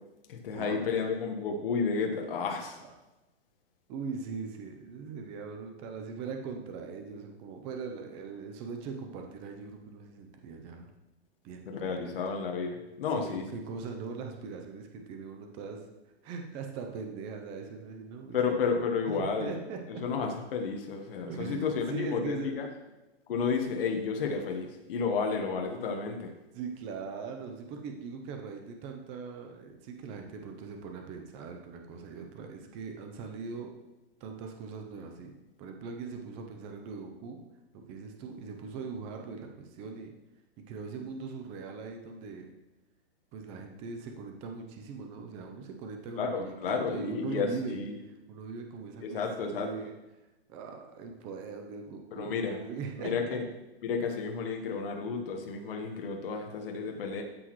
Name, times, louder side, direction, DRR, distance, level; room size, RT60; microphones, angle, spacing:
voice 1, 0.3-2.8 11.6-13.5 18.3-19.5 20.0-22.7 23.3-26.3 46.2-47.9 49.0-49.7 52.1-52.6 53.0-53.4 53.8-57.2, left 5 dB, 60° left, 3 dB, 1.3 m, -32 dB
voice 2, 3.9-10.9 11.4-12.1 13.1-15.8 16.2-18.4 19.1-20.0 21.3-22.5 26.5-33.7 34.2-35.3 35.6-37.4 37.7-40.1 40.7-42.5 43.3-47.8 48.3-49.9 50.5-53.4, right 5 dB, 15° right, 4 dB, 0.6 m, -40 dB
12.5 x 6.2 x 3.1 m, 1.0 s
hypercardioid pair, 165°, 31 cm